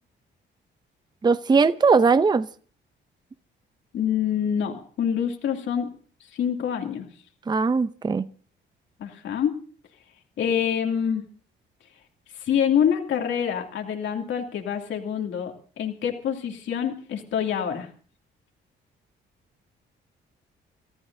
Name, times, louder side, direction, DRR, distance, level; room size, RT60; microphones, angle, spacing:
voice 1, 1.2-2.5 7.5-8.3, right 4 dB, 20° right, 0.6 m, -19 dB
voice 2, 3.9-5.9 6.3-7.1 9.0-9.6 10.4-11.2 12.3-17.9, left 8 dB, 70° left, 2.6 m, -26 dB
30.0 x 14.5 x 2.7 m
cardioid pair, 90°, 20 cm